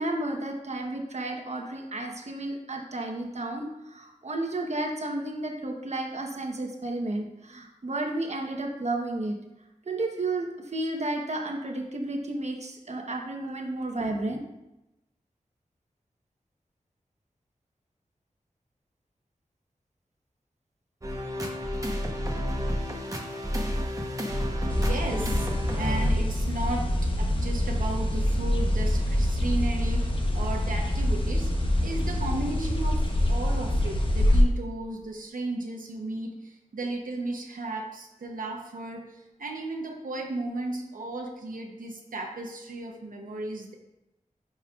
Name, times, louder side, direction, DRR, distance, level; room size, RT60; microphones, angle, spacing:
voice 1, 0.0-9.3 9.8-14.4, right 2 dB, 55° right, 2 dB, 1.1 m, -32 dB
sound 1, 21.0-26.1, equal, 25° right, 1.0 m, -30 dB
sound 2, 24.7-34.4, left 1 dB, 40° left, 1.0 m, -25 dB
voice 2, 24.8-31.5 31.8-43.7, right 2 dB, 85° right, 1 dB, 0.9 m, -35 dB
9.6 x 5.6 x 2.4 m, 0.95 s
wide cardioid pair, 80°, 14 cm